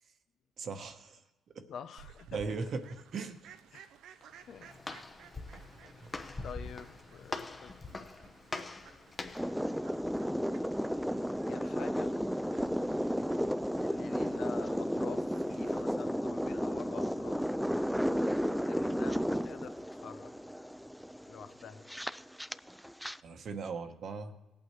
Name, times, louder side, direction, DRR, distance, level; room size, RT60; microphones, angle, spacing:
voice 1, 0.6-1.2 1.5-1.7 2.3-3.5 6.0-6.1 23.2-24.3, right 4 dB, 60° right, 7 dB, 1.1 m, -38 dB
voice 2, 1.7-2.4 3.7-3.8 4.5-4.7 6.4-8.1 11.4-12.2 13.8-17.5 18.6-20.3 21.3-21.9, left 7 dB, 65° left, 10 dB, 0.7 m, -47 dB
Fowl, 2.0-15.8, right 7 dB, 80° right, 0.6 m, -58 dB
Walk footsteps, 4.2-9.6, left 3 dB, 30° left, 0.9 m, -43 dB
sound 1, 9.3-23.2, equal, ahead, 0.3 m, -33 dB
18.5 x 8.6 x 3.2 m, 1.1 s
cardioid pair, 90°, 0 cm